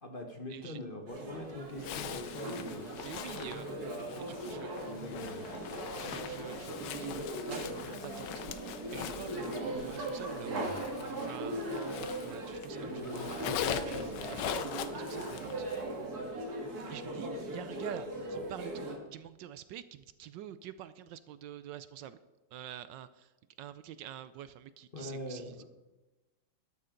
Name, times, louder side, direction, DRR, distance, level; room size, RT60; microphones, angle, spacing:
voice 1, 0.0-2.9 4.3-5.5 13.7-14.1 24.9-25.6, left 1 dB, 30° left, 3 dB, 1.3 m, -43 dB
sound 1, 1.1-19.0, right 1 dB, 55° right, 2.4 m, -39 dB
Zipper (clothing), 1.8-12.7 13.0-15.9, left 9 dB, 70° left, 1.3 m, -42 dB
voice 2, 3.0-3.7 4.2-4.9 6.0-8.3 8.9-10.6 11.2-15.7 16.9-22.2 22.5-23.3 23.6-25.5, right 11 dB, 75° right, 14 dB, 1.2 m, -47 dB
12.5 x 12.0 x 3.9 m, 1.1 s
omnidirectional pair, 2.1 m